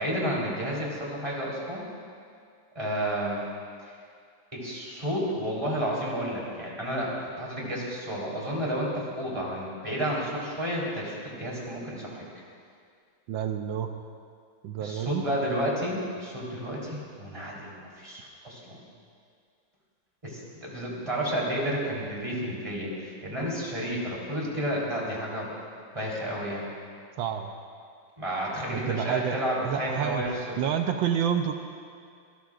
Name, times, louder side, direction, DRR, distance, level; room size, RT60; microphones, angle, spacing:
voice 1, 0.0-1.8 2.7-3.4 3.8-3.9 4.5-12.3 14.8-18.8 20.2-25.5 25.9-26.7 28.2-30.6, equal, 15° right, -5 dB, 3.9 m, -31 dB
voice 2, 13.3-13.9 14.6-15.3 27.2-27.5 28.7-29.4 29.6-30.2 30.6-31.5, right 8 dB, 85° right, 5 dB, 1.5 m, -28 dB
26.0 x 19.0 x 2.5 m, 2.2 s
omnidirectional pair, 2.1 m